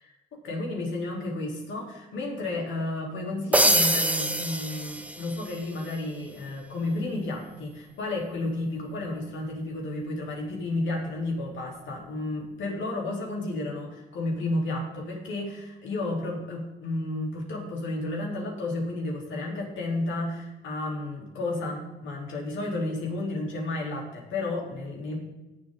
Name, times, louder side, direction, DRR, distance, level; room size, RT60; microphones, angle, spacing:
voice 1, 0.3-25.2, left 2 dB, 75° left, -1 dB, 3.6 m, -32 dB
sound 1, 3.5-5.6, right 1 dB, 5° right, 1.0 m, -24 dB
18.0 x 7.3 x 3.9 m, 1.1 s
cardioid pair, 90°, 20 cm